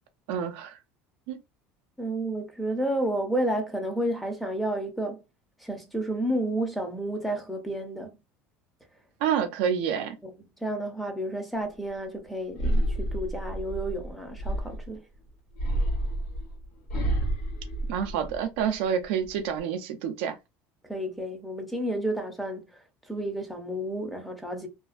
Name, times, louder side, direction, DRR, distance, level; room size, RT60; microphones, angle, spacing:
voice 1, 0.3-0.8 1.3-1.4 9.2-10.1 17.9-20.4, right 8 dB, 85° right, 0.5 m, -28 dB
voice 2, 2.0-5.2 5.6-8.2 10.2-10.3 10.6-15.0 20.8-22.6 23.1-24.7, right 1 dB, ahead, 0.6 m, -31 dB
sound 1, 12.5-15.0 15.6-18.6 19.0-19.6, right 1 dB, 85° left, 1.3 m, -29 dB
2.4 x 2.2 x 2.4 m
cardioid pair, 130°, 6 cm